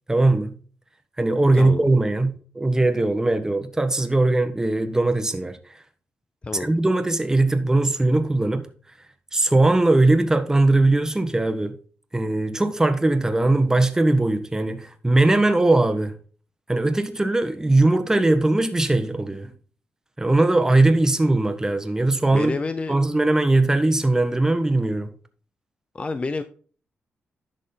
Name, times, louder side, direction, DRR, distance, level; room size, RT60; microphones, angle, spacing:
voice 1, 0.1-0.5 1.2-5.6 6.5-8.7 9.3-11.8 12.1-16.1 16.7-19.5 20.2-22.5 22.9-25.1, right 2 dB, 15° right, 1.3 m, -20 dB
voice 2, 22.3-22.9 25.9-26.4, left 3 dB, 30° left, 0.7 m, -28 dB
11.0 x 6.4 x 3.9 m
cardioid pair, 90°, 4 cm